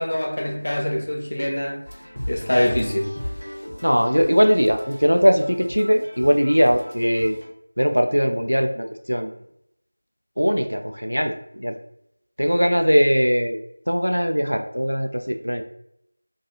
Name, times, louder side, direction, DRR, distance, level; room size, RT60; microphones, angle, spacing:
voice 1, 0.0-1.8 2.3-3.1, left 1 dB, 40° left, 0.5 m, -24 dB
sound 1, 1.9-7.5, equal, 80° left, 0.8 m, -36 dB
voice 2, 3.8-7.4 7.8-9.3 10.4-11.8 12.4-13.6 13.9-15.6, equal, 85° right, 0.4 m, -20 dB
2.4 x 2.3 x 2.8 m
figure-of-eight pair, 175°, 0 cm